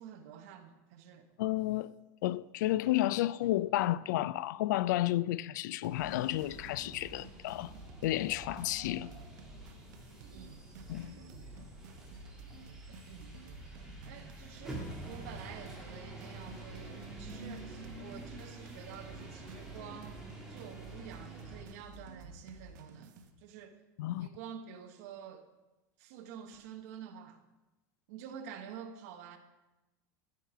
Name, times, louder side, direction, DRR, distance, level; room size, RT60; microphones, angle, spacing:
voice 1, 0.0-1.3 10.3-10.6 12.9-13.3 14.1-23.8 24.2-25.5 26.0-27.4 28.1-29.4, right 8 dB, 55° right, 1.1 m, -49 dB
voice 2, 1.4-1.9 2.2-7.7 8.0-9.1 10.9-11.2 24.0-24.3, left 15 dB, 85° left, 0.4 m, -31 dB
sound 1, 5.8-23.3, right 3 dB, 80° right, 1.1 m, -52 dB
sound 2, 6.0-21.6, right 2 dB, 5° right, 1.8 m, -48 dB
14.5 x 5.8 x 4.7 m
supercardioid pair, 175°, 10 cm